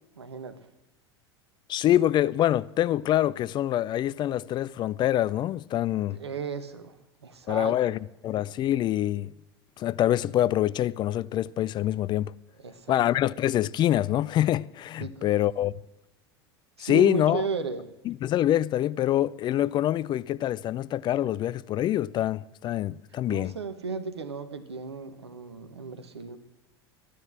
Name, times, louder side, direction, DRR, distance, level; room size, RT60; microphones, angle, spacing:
voice 1, 0.1-0.6 6.1-7.0 7.2-7.7 12.6-13.0 15.0-15.3 16.8-17.9 23.3-26.4, right 5 dB, 80° right, 1.5 m, -34 dB
voice 2, 1.7-6.2 7.5-9.3 9.8-12.3 12.9-15.7 16.8-17.4 18.1-23.5, left 12 dB, 35° left, 0.4 m, -25 dB
14.5 x 10.0 x 7.5 m
figure-of-eight pair, 80°, 14 cm